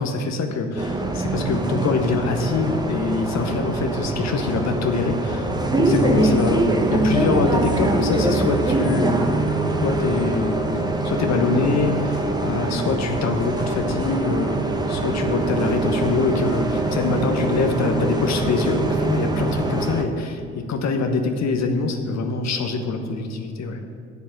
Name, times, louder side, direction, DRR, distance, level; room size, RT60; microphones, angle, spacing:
voice 1, 0.0-5.5 5.8-6.6 6.9-9.2 9.8-10.6 11.0-14.6 14.9-23.8, left 4 dB, 55° left, 5 dB, 1.1 m, -24 dB
Bus, 0.8-20.0, right 2 dB, 10° right, 1.3 m, -23 dB
7.3 x 6.8 x 8.1 m, 2.3 s
hypercardioid pair, 60°, 33 cm